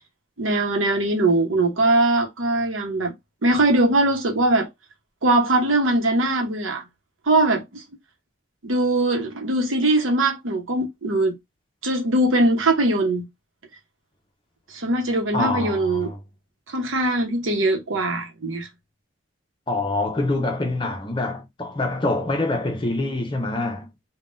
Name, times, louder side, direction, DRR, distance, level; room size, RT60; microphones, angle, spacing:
voice 1, 0.4-3.1 3.4-4.7 5.2-6.8 7.3-7.8 8.6-11.3 11.8-13.3 14.7-16.1 16.7-18.7, right 2 dB, 85° right, 0.9 m, -21 dB
voice 2, 15.3-16.2 19.7-23.9, left 2 dB, 25° left, 0.6 m, -25 dB
3.6 x 2.2 x 2.5 m
head